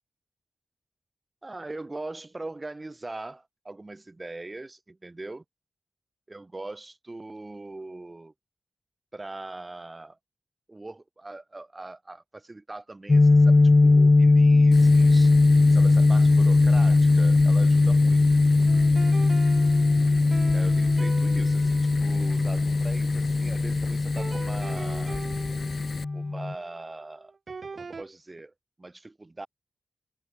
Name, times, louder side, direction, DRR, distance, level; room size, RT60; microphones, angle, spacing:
voice 1, 1.4-5.4 6.3-8.3 9.1-10.2 10.7-15.3 15.7-18.2 20.5-25.2 26.1-27.3 27.7-28.5 28.8-29.5, right 2 dB, 20° right, 4.0 m, -41 dB
sound 1, 13.1-26.5, left 3 dB, 30° left, 1.2 m, -20 dB
Fire, 14.7-26.0, left 5 dB, 60° left, 6.8 m, -38 dB
sound 2, 18.7-23.5 24.2-28.0, right 4 dB, 50° right, 3.7 m, -42 dB
wide cardioid pair, 135°, 0 cm